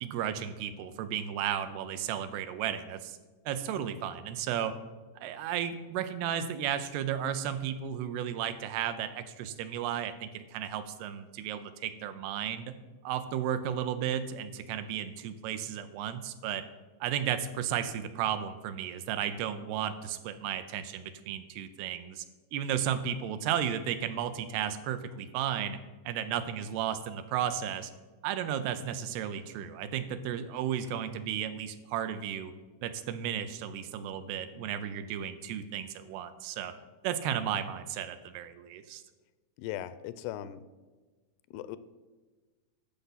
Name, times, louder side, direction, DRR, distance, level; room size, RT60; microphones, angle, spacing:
voice 1, 0.0-3.2 3.5-4.8 5.2-12.8 13.0-16.6 17.0-22.2 22.5-25.8 26.1-27.9 28.2-32.5 32.8-36.7 37.0-39.0, right 9 dB, 80° right, 10 dB, 2.7 m, -34 dB
voice 2, 39.6-40.6 41.5-41.8, left 12 dB, 85° left, 15 dB, 2.6 m, -38 dB
12.0 x 7.0 x 5.7 m, 1.3 s
omnidirectional pair, 4.7 m